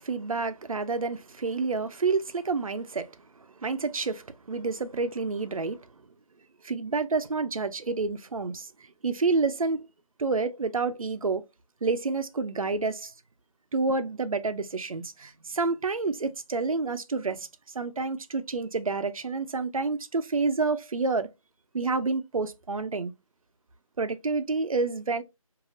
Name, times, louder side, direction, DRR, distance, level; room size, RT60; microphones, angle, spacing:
voice 1, 0.0-3.2 3.6-5.9 6.6-8.7 9.0-9.9 10.2-11.5 11.8-13.1 13.7-17.5 17.7-21.3 21.7-23.1 24.0-25.2, right 4 dB, 75° right, 0.5 m, -29 dB
3.3 x 2.5 x 2.4 m
figure-of-eight pair, 165°, 18 cm